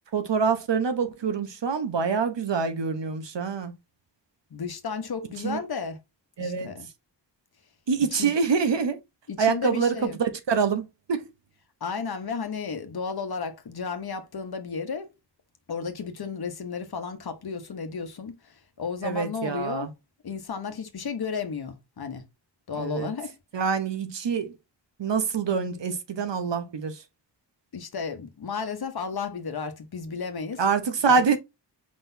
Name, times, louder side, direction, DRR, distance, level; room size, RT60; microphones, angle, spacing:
voice 1, 0.1-3.7 5.4-5.6 6.4-6.8 7.9-9.0 9.4-11.3 19.0-19.9 22.8-23.1 23.5-24.6 25.0-27.0 30.6-31.4, right 5 dB, 75° right, 0.9 m, -25 dB
voice 2, 4.5-6.0 6.4-6.9 8.1-8.3 9.3-10.2 11.8-15.1 15.7-19.9 20.2-22.2 22.7-23.3 27.7-30.6 31.0-31.2, left 5 dB, 60° left, 1.0 m, -33 dB
5.0 x 3.9 x 2.6 m
wide cardioid pair, 110°, 43 cm